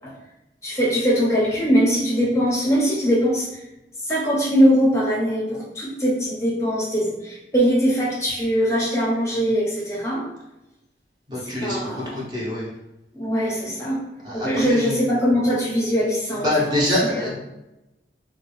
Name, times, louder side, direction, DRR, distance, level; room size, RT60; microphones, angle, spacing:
voice 1, 0.6-3.5 4.0-10.2 11.4-12.2 13.1-14.0 14.3-17.3, equal, 15° left, -5 dB, 0.7 m, -21 dB
voice 2, 11.3-11.8 12.1-12.6 14.3-14.8 16.4-17.3, left 1 dB, 25° right, -5 dB, 0.9 m, -24 dB
3.6 x 2.4 x 3.1 m, 0.93 s
head